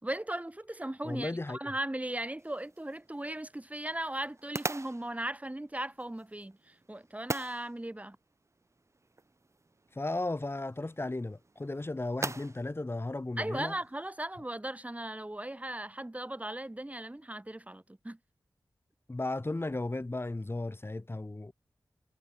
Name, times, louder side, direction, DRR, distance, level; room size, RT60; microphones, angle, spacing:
voice 1, 0.0-6.6 6.9-8.2 13.4-18.2, right 1 dB, 20° right, 4.8 m, -37 dB
voice 2, 1.0-1.7 10.0-13.7 19.1-21.5, left 2 dB, 30° left, 4.5 m, -35 dB
sound 1, 2.4-14.1, right 3 dB, 40° right, 2.1 m, -44 dB
cardioid pair, 50°, 8 cm